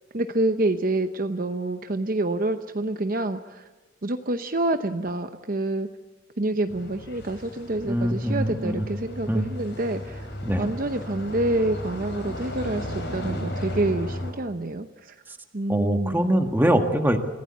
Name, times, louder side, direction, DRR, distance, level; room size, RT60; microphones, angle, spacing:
voice 1, 0.1-3.7 4.0-5.9 6.4-10.3 10.6-15.1 15.5-16.2, right 2 dB, 45° right, 8 dB, 0.8 m, -27 dB
sound 1, 6.7-14.3, equal, 60° left, 6.2 m, -35 dB
voice 2, 7.8-8.8 9.3-9.5 10.4-10.7 15.7-17.2, equal, 10° right, 5 dB, 1.7 m, -23 dB
27.0 x 16.0 x 8.5 m, 1.2 s
head